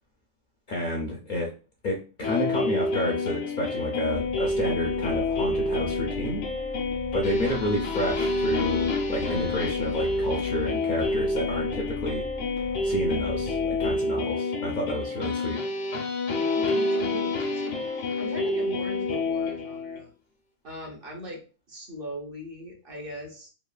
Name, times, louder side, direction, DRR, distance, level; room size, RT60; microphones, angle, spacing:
voice 1, 0.7-1.5 1.8-6.4 7.1-12.2 12.8-15.6, left 1 dB, 55° left, -1 dB, 0.6 m, -30 dB
sound 1, 2.2-20.0, left 3 dB, 80° left, 1.0 m, -28 dB
sound 2, 4.1-14.0, equal, 90° right, 1.4 m, -40 dB
voice 2, 16.6-20.1 20.6-21.4 21.7-23.5, equal, 55° right, -1 dB, 0.8 m, -39 dB
3.1 x 2.3 x 2.3 m, 0.36 s
omnidirectional pair, 1.3 m